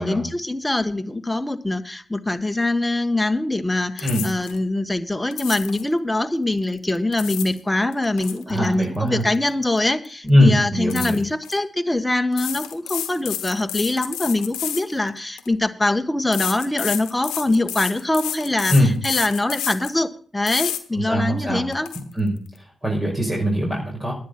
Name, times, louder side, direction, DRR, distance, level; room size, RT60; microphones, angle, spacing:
voice 1, 0.0-21.9, left 2 dB, 15° left, 8 dB, 1.3 m, -23 dB
sound 1, 4.0-4.6 5.3-5.9 6.9-7.6 7.9-9.8 10.1-10.3 10.9-11.6 12.3-15.5 16.3-20.0 20.5-20.8 21.3-21.4 21.7-22.0, left 11 dB, 85° left, 1.1 m, -30 dB
voice 2, 8.5-9.2 10.2-11.2 18.7-18.9 20.9-21.6 22.1-22.3 22.8-24.1, equal, 25° right, -2 dB, 5.5 m, -20 dB
10.0 x 9.6 x 6.0 m, 0.44 s
hypercardioid pair, 45°, 0 cm